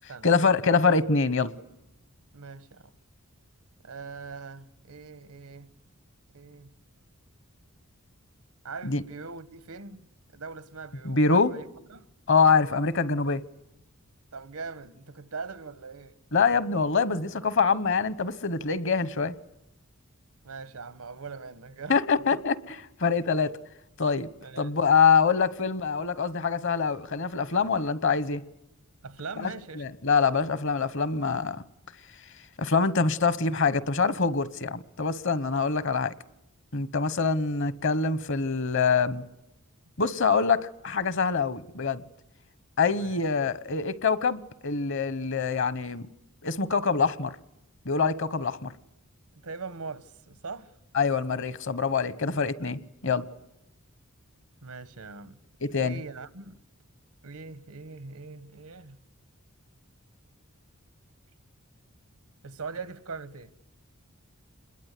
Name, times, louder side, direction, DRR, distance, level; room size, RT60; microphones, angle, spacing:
voice 1, 0.2-1.5 8.8-9.0 11.0-11.6 12.3-13.4 16.3-19.3 21.9-22.5 23.0-23.6 24.0-24.3 24.6-28.4 29.4-29.5 29.8-31.6 32.6-36.1 36.7-39.2 40.0-42.0 42.8-46.1 46.4-47.4 47.8-48.7 50.9-53.3 55.6-56.0, left 5 dB, 60° left, 1.0 m, -25 dB
voice 2, 2.3-2.9 3.8-5.7 6.3-6.7 8.6-10.1 10.3-11.6 11.9-12.1 12.4-12.5 14.3-16.2 20.4-21.9 22.3-22.4 24.4-24.8 29.0-29.9 42.9-43.2 49.3-50.7 54.6-55.4 55.7-56.6 57.2-59.0 62.4-63.5, right 4 dB, 90° right, 1.4 m, -41 dB
28.0 x 21.5 x 8.4 m
head